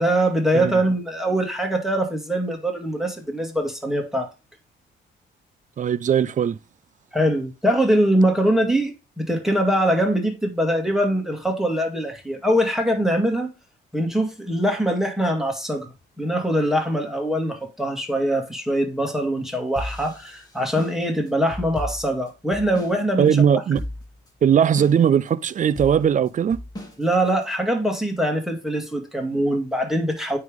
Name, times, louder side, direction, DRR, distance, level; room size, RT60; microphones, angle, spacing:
voice 1, 0.0-4.3 7.1-13.5 13.9-15.9 16.2-23.4 27.0-30.4, right 1 dB, ahead, 2.2 m, -23 dB
voice 2, 5.8-6.6 23.2-23.8 24.4-26.6, right 8 dB, 40° right, 0.5 m, -19 dB
sound 1, 19.8-23.0 23.3-23.4 23.7-24.3 24.8-25.3 25.8-27.5, left 1 dB, 20° left, 2.7 m, -35 dB
9.3 x 3.5 x 3.6 m
cardioid pair, 90°, 20 cm